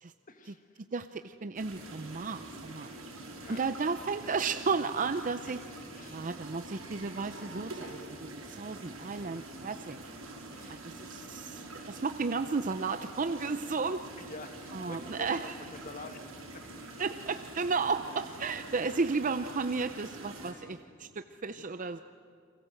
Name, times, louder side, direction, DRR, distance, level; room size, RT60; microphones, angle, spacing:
voice 1, 0.3-0.8 3.3-3.7 5.4-5.6 5.9-6.2 10.5-10.8 13.7-13.8 14.2-16.2 16.5-16.6 18.8-19.0, left 2 dB, 40° left, 7 dB, 1.8 m, -47 dB
voice 2, 0.9-2.9 3.5-5.6 6.1-8.0 8.4-10.0 10.8-14.1 14.7-15.6 17.0-22.0, right 4 dB, 40° right, 10 dB, 0.6 m, -33 dB
sound 1, 1.6-20.5, right 2 dB, 85° right, 6.4 m, -45 dB
29.5 x 22.0 x 7.9 m, 2.3 s
head